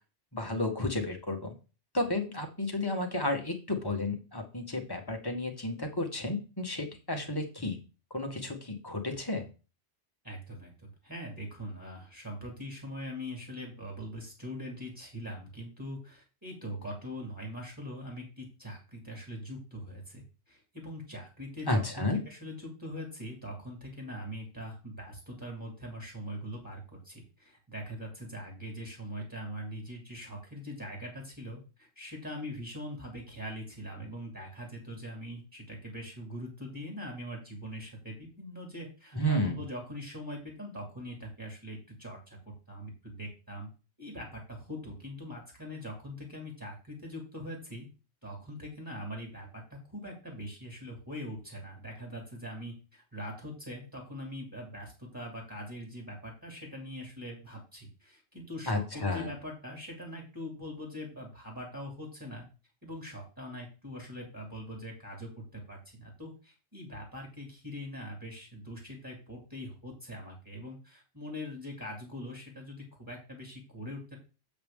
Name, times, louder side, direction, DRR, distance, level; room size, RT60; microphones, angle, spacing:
voice 1, 0.3-1.5 1.9-7.8 8.1-9.5 21.7-22.2 39.1-39.6 58.7-59.3, left 1 dB, 20° left, 3 dB, 1.6 m, -32 dB
voice 2, 10.2-43.7 44.0-47.9 48.2-62.4 62.8-74.2, equal, 15° right, 0 dB, 2.8 m, -42 dB
7.8 x 6.7 x 3.7 m, 0.32 s
omnidirectional pair, 1.2 m